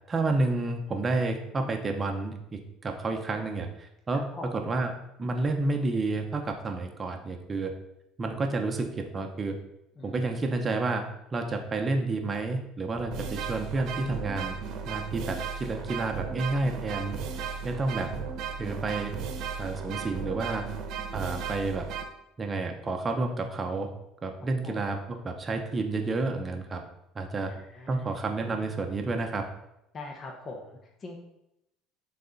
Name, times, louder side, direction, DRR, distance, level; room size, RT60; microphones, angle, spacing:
voice 1, 0.1-4.9 5.2-7.7 8.2-9.6 10.0-11.0 11.3-18.1 18.6-19.1 19.6-20.7 21.1-21.9 22.4-23.9 24.2-26.8 27.1-27.5 27.9-29.4, right 3 dB, 25° right, 4 dB, 0.8 m, -30 dB
voice 2, 4.1-4.5 10.0-10.4 17.3-18.0 24.6-24.8 27.5-28.2 29.9-31.2, left 2 dB, 35° left, 1 dB, 1.0 m, -43 dB
sound 1, 12.3-12.4 13.0-22.0, right 6 dB, 60° right, 1.0 m, -35 dB
9.2 x 4.2 x 4.0 m, 0.83 s
cardioid pair, 125°, 0 cm